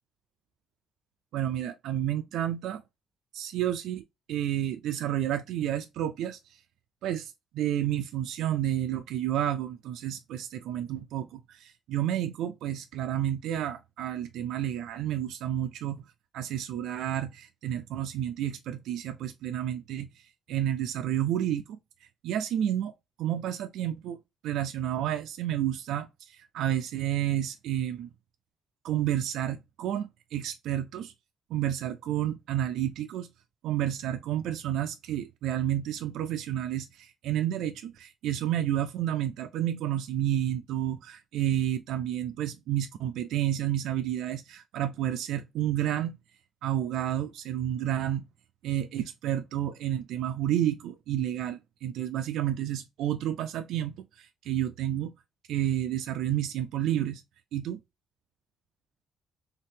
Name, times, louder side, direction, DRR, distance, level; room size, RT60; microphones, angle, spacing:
voice 1, 1.3-2.8 3.3-6.4 7.0-16.0 16.3-20.2 20.5-21.8 22.2-22.9 23.2-24.2 24.4-28.1 28.8-31.1 31.5-33.3 33.6-46.2 46.6-48.2 48.6-55.1 55.5-57.2 57.5-57.8, right 11 dB, 85° right, 0.3 m, -30 dB
3.3 x 2.8 x 3.3 m
cardioid pair, 90°, 0 cm